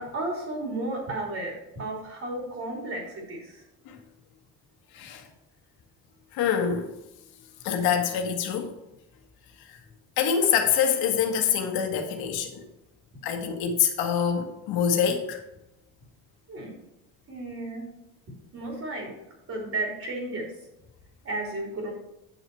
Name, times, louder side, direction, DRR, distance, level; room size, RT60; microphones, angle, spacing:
voice 1, 0.0-3.6 16.5-16.7 17.3-17.9 18.5-19.1 19.5-20.4 21.2-21.9, right 2 dB, 45° right, 3.0 m, -33 dB
voice 2, 6.3-6.9 7.6-8.7 9.7-9.8 10.2-12.6 13.2-15.4, left 7 dB, 85° left, 1.7 m, -25 dB
9.2 x 6.2 x 4.6 m
cardioid pair, 115°, 36 cm